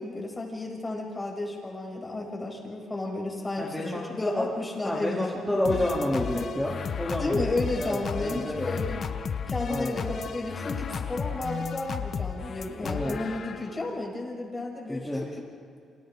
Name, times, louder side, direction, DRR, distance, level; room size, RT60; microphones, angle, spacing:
voice 1, 0.0-5.6 7.2-9.0 9.5-15.1, left 2 dB, 20° left, -2 dB, 7.6 m, -33 dB
voice 2, 3.6-4.5 4.8-8.7 9.7-10.1 12.8-13.1 14.9-15.2, left 1 dB, 5° left, -6 dB, 3.4 m, -30 dB
sound 1, 5.7-13.9, left 6 dB, 55° left, 1.2 m, -34 dB
29.5 x 27.0 x 4.0 m, 2.4 s
cardioid pair, 90°, 0 cm